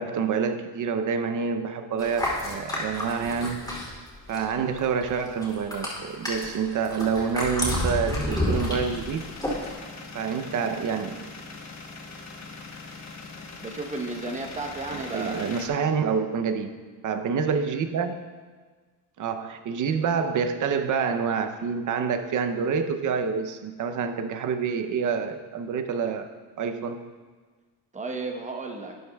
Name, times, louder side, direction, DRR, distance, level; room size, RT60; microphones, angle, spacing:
voice 1, 0.0-3.6 4.3-9.3 10.1-11.2 14.9-16.7 17.0-18.2 19.2-26.3 26.6-27.0, right 6 dB, 45° right, 7 dB, 0.7 m, -27 dB
sound 1, 2.0-4.5 4.8-9.7, left 1 dB, 10° left, 2.9 m, -30 dB
sound 2, 8.5-15.7, left 3 dB, 40° left, 1.3 m, -42 dB
voice 2, 13.6-15.4 27.9-28.9, right 3 dB, 15° right, 2 dB, 1.0 m, -33 dB
12.0 x 9.4 x 2.3 m, 1.4 s
cardioid pair, 120°, 43 cm